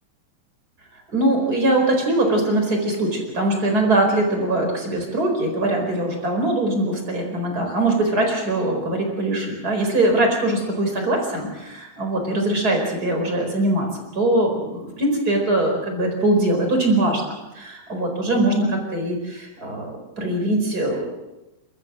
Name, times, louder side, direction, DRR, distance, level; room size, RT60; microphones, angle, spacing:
voice 1, 1.1-13.9 14.1-21.1, right 1 dB, 20° right, 3 dB, 4.5 m, -22 dB
29.5 x 13.5 x 7.7 m, 0.99 s
omnidirectional pair, 5.2 m